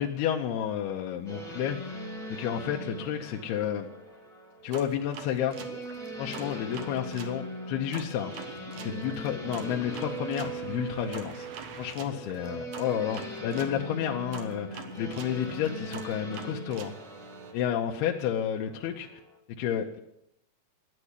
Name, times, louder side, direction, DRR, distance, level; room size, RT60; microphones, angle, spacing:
voice 1, 0.0-2.0 2.3-3.9 4.6-5.6 6.2-8.6 8.8-11.5 11.8-16.9 17.5-19.1 19.6-20.0, left 9 dB, 75° left, 1 dB, 2.7 m, -31 dB
sound 1, 1.3-19.3, right 1 dB, ahead, 1.5 m, -40 dB
sound 2, 4.7-7.4 7.9-13.8 14.3-17.5, right 7 dB, 65° right, 2.1 m, -45 dB
12.5 x 9.9 x 9.9 m, 0.80 s
omnidirectional pair, 5.1 m